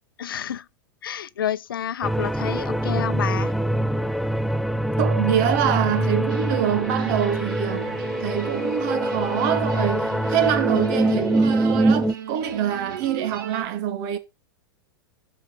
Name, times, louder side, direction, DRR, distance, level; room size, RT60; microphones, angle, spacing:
voice 1, 0.2-0.7 1.0-3.5, left 9 dB, 75° left, 0.6 m, -29 dB
sound 1, 2.0-12.1, right 1 dB, ahead, 0.5 m, -24 dB
voice 2, 5.0-7.9 8.2-14.2, right 10 dB, 50° right, 2.0 m, -25 dB
sound 2, 5.6-13.6, right 7 dB, 65° right, 3.0 m, -36 dB
12.0 x 4.7 x 5.3 m
hypercardioid pair, 100°, 12 cm